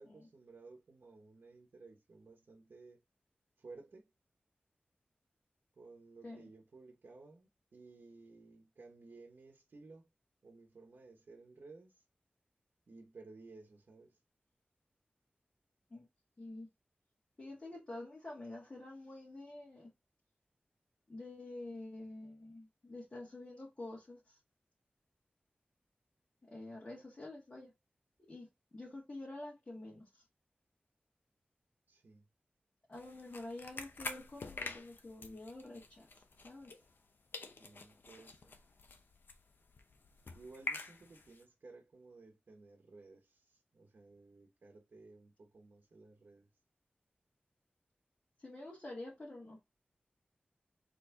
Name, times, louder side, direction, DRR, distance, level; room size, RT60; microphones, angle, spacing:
voice 1, 0.0-3.0 3.6-4.0 5.7-10.1 10.4-12.0 12.9-14.2 31.9-32.3 37.5-38.6 40.3-46.5, right 3 dB, 75° right, 1.0 m, -56 dB
voice 2, 16.4-16.7 17.4-19.9 21.1-24.4 26.4-27.7 28.3-30.2 32.9-36.7 48.4-49.6, left 2 dB, 40° left, 1.8 m, -48 dB
sound 1, 32.9-37.1 37.3-41.4, left 3 dB, 75° left, 0.7 m, -47 dB
4.4 x 3.2 x 3.7 m
wide cardioid pair, 65°, 4 cm